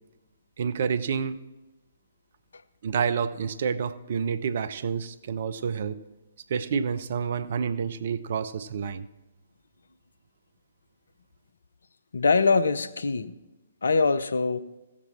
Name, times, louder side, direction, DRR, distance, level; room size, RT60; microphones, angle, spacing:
voice 1, 0.6-1.4 2.8-6.0 6.5-9.1, right 6 dB, 45° right, 0.6 m, -28 dB
voice 2, 12.1-13.4 13.8-14.6, left 4 dB, 65° left, 0.6 m, -23 dB
16.0 x 7.3 x 4.3 m
figure-of-eight pair, 125°, 0 cm